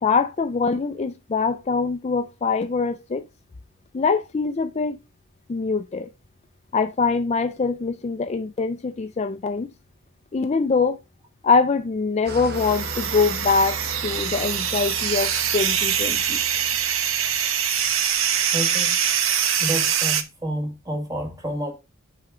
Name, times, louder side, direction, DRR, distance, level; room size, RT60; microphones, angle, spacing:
voice 1, 0.0-3.2 3.9-5.0 5.5-6.1 6.7-9.7 10.3-11.0 11.4-16.4, left 4 dB, 30° left, 0.4 m, -23 dB
Engine starting / Idling, 12.2-17.7, right 1 dB, 50° right, 1.0 m, -37 dB
sound 1, 12.5-20.2, right 8 dB, 75° right, 0.8 m, -24 dB
voice 2, 18.5-18.9 19.6-21.7, right 1 dB, 15° right, 1.6 m, -29 dB
6.3 x 4.8 x 4.8 m
head